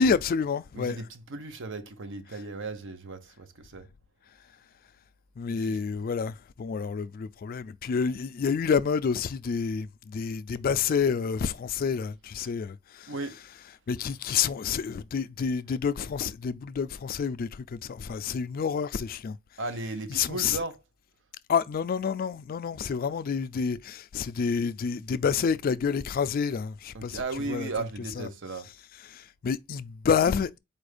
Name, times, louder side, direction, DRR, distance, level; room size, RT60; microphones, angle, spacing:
voice 1, 0.0-1.0 5.4-13.1 13.9-19.4 20.1-20.6 21.5-27.2 27.5-27.7 28.2-28.3 29.1-30.6, left 6 dB, 45° left, 0.3 m, -28 dB
voice 2, 0.8-3.9 5.5-5.8 13.1-13.4 19.6-20.8 26.9-28.7, right 3 dB, 65° right, 0.7 m, -36 dB
4.3 x 2.5 x 4.9 m
head